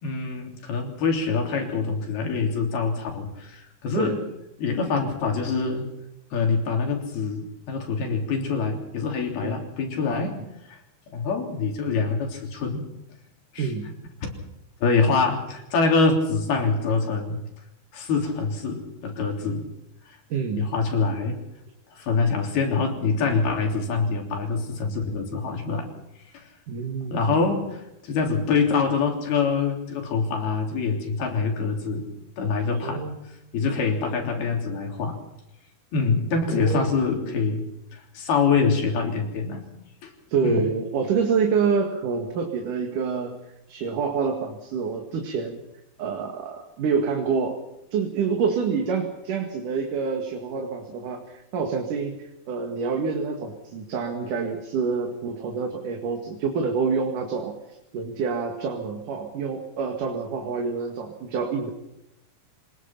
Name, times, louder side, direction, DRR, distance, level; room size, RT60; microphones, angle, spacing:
voice 1, 0.0-4.2 4.6-5.9 6.3-10.4 10.7-10.8 11.1-12.9 13.5-13.7 14.2-14.3 14.8-17.4 17.9-19.7 20.1-20.2 20.6-21.4 22.0-25.9 26.3-26.5 27.1-32.1 32.4-33.0 33.5-35.2 35.9-39.6 40.0-40.1 40.4-40.7, left 4 dB, 80° left, 2 dB, 5.3 m, -25 dB
voice 2, 13.6-13.9 20.3-20.7 26.7-27.3 32.8-33.2 36.5-37.4 40.3-43.4 43.7-45.6 46.0-47.6 47.9-52.2 52.5-57.5 57.9-61.7, right 5 dB, 60° right, 3 dB, 3.2 m, -27 dB
26.0 x 20.0 x 5.9 m, 0.87 s
omnidirectional pair, 4.4 m